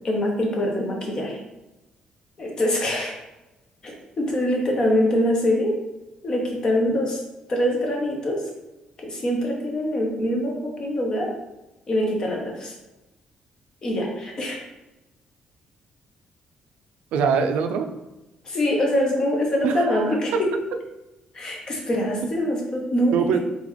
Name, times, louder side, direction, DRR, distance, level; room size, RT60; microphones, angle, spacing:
voice 1, 0.0-1.4 2.4-3.2 3.8-5.8 6.2-7.2 7.5-8.4 9.0-11.3 11.9-12.8 13.8-14.6 18.4-20.5 21.3-23.4, left 1 dB, 30° left, 0 dB, 0.9 m, -24 dB
voice 2, 17.1-17.9 19.6-20.4 23.1-23.4, right 6 dB, 85° right, 7 dB, 0.4 m, -23 dB
3.9 x 3.3 x 3.1 m, 1.0 s
cardioid pair, 155°, 2 cm